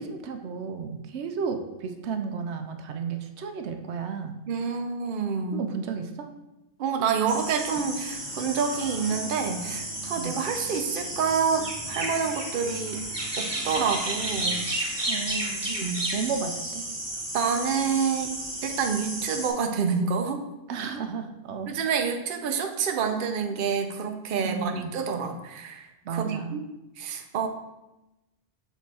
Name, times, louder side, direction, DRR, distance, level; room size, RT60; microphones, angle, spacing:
voice 1, 0.0-4.4 5.5-6.3 10.1-10.4 15.1-15.7 16.1-16.9 20.7-21.7 24.4-24.9 26.0-26.6, right 6 dB, 85° right, 6 dB, 0.9 m, -33 dB
voice 2, 4.5-5.6 6.8-13.0 13.4-15.0 15.7-16.1 17.3-18.3 18.6-20.4 21.7-26.6 27.0-27.5, right 6 dB, 55° right, 5 dB, 0.8 m, -28 dB
sound 1, 7.3-19.5, right 1 dB, 25° right, 1.3 m, -33 dB
sound 2, 8.1-14.6, right 2 dB, 75° left, 1.5 m, -45 dB
6.4 x 4.0 x 4.2 m, 0.97 s
omnidirectional pair, 1.1 m